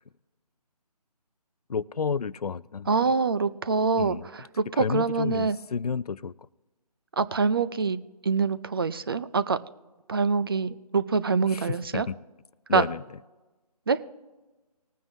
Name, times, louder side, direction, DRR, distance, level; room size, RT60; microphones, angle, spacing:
voice 1, 1.7-2.9 4.0-4.3 4.8-6.3 11.5-12.2 12.7-13.0, left 6 dB, 65° left, 18 dB, 0.5 m, -31 dB
voice 2, 2.9-5.6 7.2-9.6 10.1-12.1 12.7-12.8 13.9-14.0, right 4 dB, 35° right, 14 dB, 0.5 m, -25 dB
20.5 x 9.3 x 2.7 m, 1.2 s
figure-of-eight pair, 160°, 21 cm